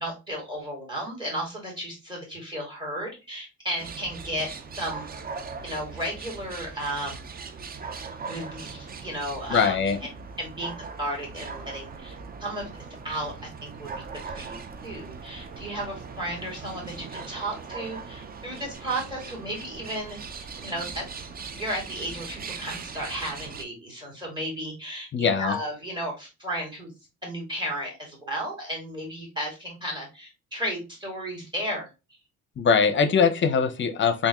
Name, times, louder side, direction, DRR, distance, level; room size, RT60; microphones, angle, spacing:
voice 1, 0.0-4.5 4.7-5.1 5.6-7.3 8.2-9.8 10.4-13.9 14.3-20.2 20.6-21.1 21.5-26.9 27.2-31.9, right 1 dB, 15° right, -1 dB, 2.2 m, -34 dB
sound 1, 3.8-23.6, right 5 dB, 30° right, 0.5 m, -40 dB
voice 2, 9.5-10.0 25.1-25.5 32.6-34.3, left 6 dB, 40° left, 10 dB, 0.6 m, -22 dB
3.5 x 2.6 x 2.9 m, 0.28 s
cardioid pair, 90°, 30 cm